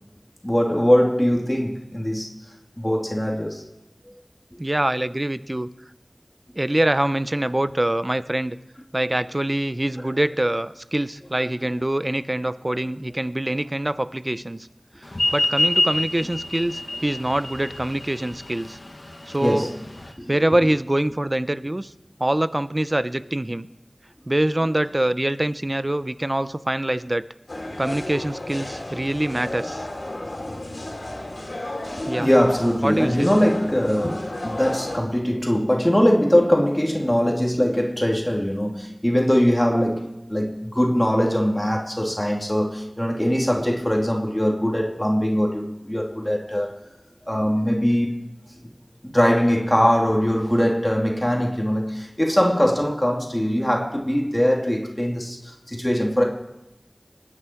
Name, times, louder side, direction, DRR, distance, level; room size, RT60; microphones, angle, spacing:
voice 1, 0.4-2.3 2.8-3.6 19.4-19.8 31.9-46.7 47.3-48.1 49.0-56.2, equal, 15° left, 0 dB, 2.7 m, -21 dB
voice 2, 4.6-5.7 6.6-8.6 8.9-14.7 15.3-18.8 19.3-19.7 20.3-21.9 22.2-23.7 24.3-27.2 27.8-29.9 32.1-32.3 32.8-33.3, right 1 dB, 40° right, 13 dB, 0.6 m, -24 dB
sound 1, 15.1-20.1, left 1 dB, 70° left, 1.7 m, -26 dB
sound 2, 27.5-35.0, left 1 dB, 85° left, 2.8 m, -33 dB
26.0 x 9.8 x 4.6 m, 0.93 s
wide cardioid pair, 40°, 0 cm